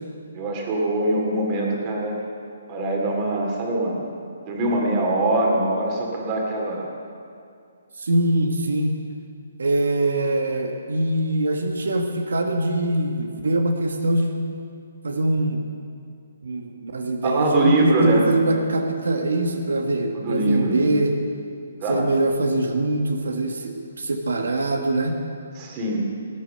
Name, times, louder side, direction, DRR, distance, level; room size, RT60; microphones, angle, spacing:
voice 1, 0.3-2.2 2.7-4.1 4.4-6.9 17.2-18.3 20.1-20.9 21.8-22.1 25.5-26.0, right 2 dB, 25° right, -1 dB, 2.5 m, -23 dB
voice 2, 8.0-8.9 9.6-14.4 15.0-15.6 16.4-21.1 21.9-25.2, right 1 dB, 85° right, 5 dB, 1.3 m, -23 dB
18.5 x 7.9 x 6.6 m, 2.4 s
hypercardioid pair, 160°, 0 cm